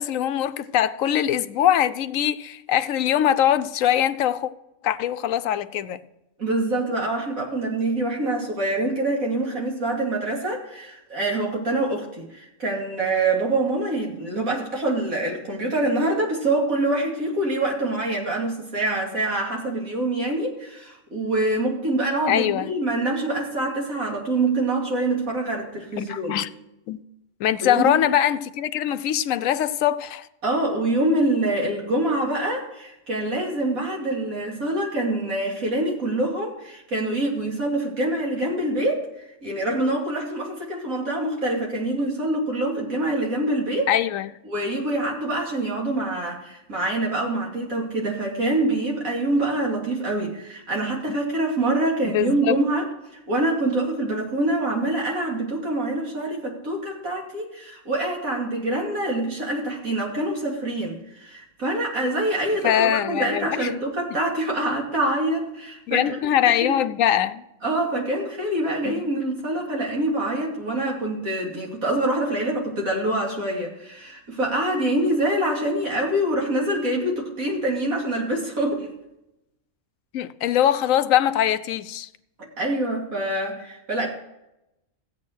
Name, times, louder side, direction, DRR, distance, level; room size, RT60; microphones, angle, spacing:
voice 1, 0.0-4.5 4.8-6.0 22.3-22.7 26.0-26.5 26.9-27.0 27.4-30.3 43.9-44.3 51.1-51.2 52.1-52.6 62.6-63.8 65.9-67.4 68.8-69.0 80.1-82.1, left 11 dB, 80° left, 1.0 m, -22 dB
voice 2, 6.4-26.4 27.6-27.9 30.4-39.1 39.4-43.9 44.4-52.9 53.3-66.2 66.6-66.8 67.6-78.9 82.6-84.1, right 1 dB, 85° right, 2.9 m, -25 dB
14.5 x 8.9 x 4.5 m
omnidirectional pair, 1.4 m